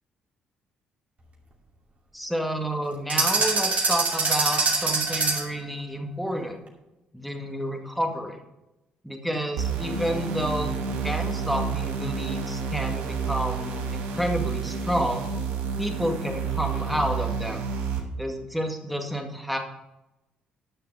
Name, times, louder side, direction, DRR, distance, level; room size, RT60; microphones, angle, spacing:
voice 1, 2.1-6.6 7.1-8.4 9.0-15.3 15.8-17.6 18.2-19.6, equal, ahead, 3 dB, 2.0 m, -30 dB
sound 1, 3.1-5.6, right 3 dB, 45° right, 2.6 m, -24 dB
sound 2, 9.6-18.0, right 6 dB, 80° right, 1.5 m, -30 dB
10.5 x 6.7 x 5.4 m, 0.97 s
supercardioid pair, 60°, 3 cm